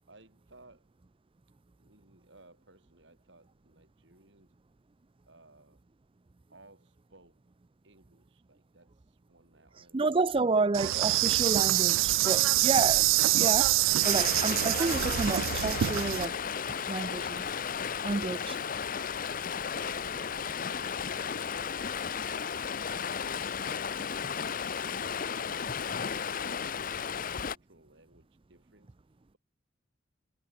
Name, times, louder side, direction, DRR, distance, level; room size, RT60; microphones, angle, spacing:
voice 1, 0.1-0.9 1.8-4.6 5.3-5.9 6.5-7.5 7.8-10.6 24.2-29.4, right 2 dB, 65° right, 5.6 m, -60 dB
voice 2, 9.9-16.4 16.9-17.4 18.0-18.6, right 3 dB, 30° right, 0.5 m, -30 dB
Insect, 10.7-16.3, right 16 dB, 90° right, 0.3 m, -25 dB
Stream, 14.0-27.6, left 7 dB, 45° left, 0.7 m, -34 dB
head